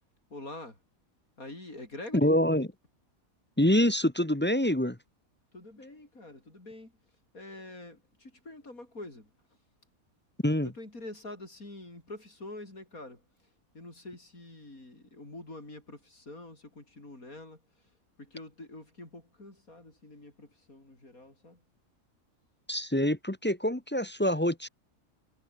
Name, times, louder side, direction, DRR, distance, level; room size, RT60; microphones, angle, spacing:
voice 1, 0.3-0.8 1.4-2.4 5.5-6.9 7.3-9.3 10.6-13.2 13.7-17.6 18.2-21.6, left 2 dB, 90° left, 7.2 m, -46 dB
voice 2, 2.1-2.7 3.6-5.0 10.4-10.7 22.7-24.7, left 1 dB, 10° left, 0.9 m, -26 dB
omnidirectional pair, 1.5 m